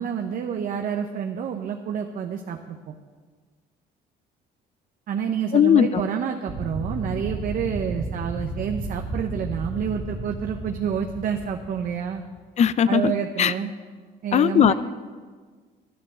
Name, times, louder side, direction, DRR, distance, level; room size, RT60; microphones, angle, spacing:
voice 1, 0.0-2.9 5.1-12.2 12.9-13.7 14.2-14.7, right 7 dB, 55° right, 4 dB, 0.8 m, -28 dB
voice 2, 5.5-5.9 12.6-13.1 13.4-13.5 14.3-14.7, left 9 dB, 40° left, 16 dB, 0.5 m, -18 dB
sound 1, 6.5-12.3, right 2 dB, 40° right, 2.6 m, -33 dB
11.5 x 10.5 x 6.6 m, 1.5 s
cardioid pair, 110°, 17 cm